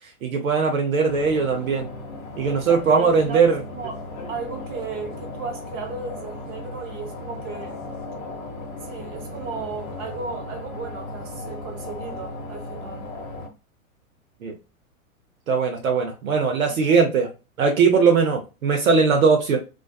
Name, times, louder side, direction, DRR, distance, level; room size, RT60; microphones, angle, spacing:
voice 1, 0.2-1.9 2.4-3.6 14.4-14.5 15.5-17.3 17.6-19.6, right 5 dB, 70° right, 0.7 m, -20 dB
sound 1, 1.1-13.5, left 2 dB, 25° left, 0.6 m, -36 dB
voice 2, 2.5-4.0 4.3-7.9 8.8-13.1 16.6-17.0, right 5 dB, 20° right, 0.5 m, -35 dB
2.4 x 2.3 x 2.2 m
figure-of-eight pair, 100°, 43 cm